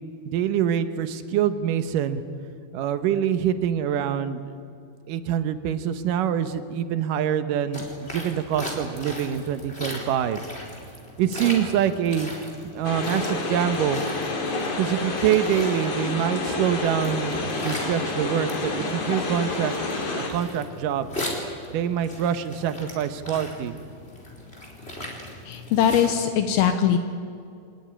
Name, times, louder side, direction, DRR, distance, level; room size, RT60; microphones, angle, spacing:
voice 1, 0.3-2.2 2.7-4.4 5.1-10.4 11.2-12.3 12.7-14.0 14.8-19.7 20.1-21.1 21.7-23.8, right 9 dB, 70° right, 10 dB, 2.4 m, -25 dB
sound 1, 7.7-26.2, left 1 dB, 15° left, 3.9 m, -38 dB
sound 2, 12.8-20.3, left 3 dB, 50° left, 4.2 m, -29 dB
voice 2, 25.5-27.0, left 9 dB, 75° left, 7 dB, 2.9 m, -21 dB
24.0 x 19.5 x 9.9 m, 2.4 s
omnidirectional pair, 4.6 m